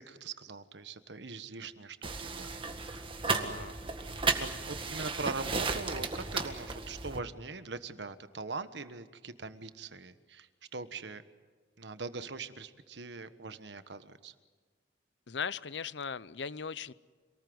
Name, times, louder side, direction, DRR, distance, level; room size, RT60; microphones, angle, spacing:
voice 1, 0.0-2.5 2.9-3.7 4.4-11.2 11.8-14.3, right 4 dB, 80° right, 11 dB, 1.4 m, -42 dB
sound 1, 2.0-7.2, right 4 dB, 30° right, 1.8 m, -34 dB
voice 2, 15.3-16.9, left 6 dB, 85° left, 18 dB, 0.7 m, -38 dB
27.0 x 19.5 x 7.9 m, 1.5 s
head